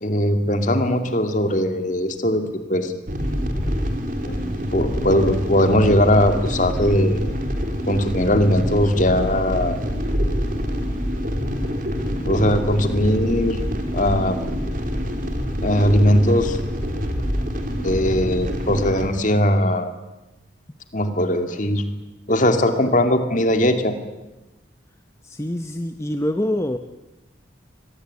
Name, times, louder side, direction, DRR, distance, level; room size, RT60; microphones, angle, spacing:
voice 1, 0.0-2.4 2.7-2.9 4.2-4.4 4.7-7.4 7.9-9.8 12.2-13.6 13.9-14.4 15.6-16.6 17.8-19.9 20.9-21.8 22.3-23.9, left 1 dB, 40° left, 8 dB, 2.4 m, -19 dB
sound 1, 3.1-19.1, equal, 45° right, 3.3 m, -26 dB
voice 2, 25.2-26.8, left 1 dB, 15° left, 7 dB, 0.8 m, -25 dB
24.5 x 19.0 x 9.6 m, 1.0 s
head